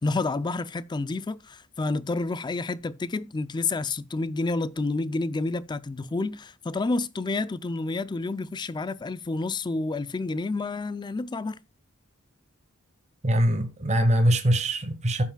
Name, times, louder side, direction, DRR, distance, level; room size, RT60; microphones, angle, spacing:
voice 1, 0.0-11.6, left 3 dB, 20° left, 0.3 m, -29 dB
voice 2, 13.2-15.2, equal, 30° right, 1.0 m, -22 dB
15.5 x 5.6 x 2.2 m
head